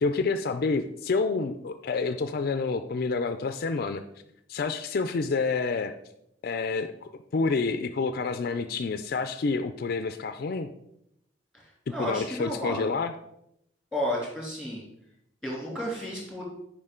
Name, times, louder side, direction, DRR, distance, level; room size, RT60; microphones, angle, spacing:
voice 1, 0.0-4.0 4.5-5.9 6.4-10.7 12.0-13.1, left 4 dB, 55° left, 9 dB, 0.4 m, -28 dB
voice 2, 11.9-12.9 13.9-14.8 15.4-16.4, equal, 5° right, -4 dB, 2.9 m, -32 dB
9.6 x 5.0 x 3.8 m, 0.78 s
head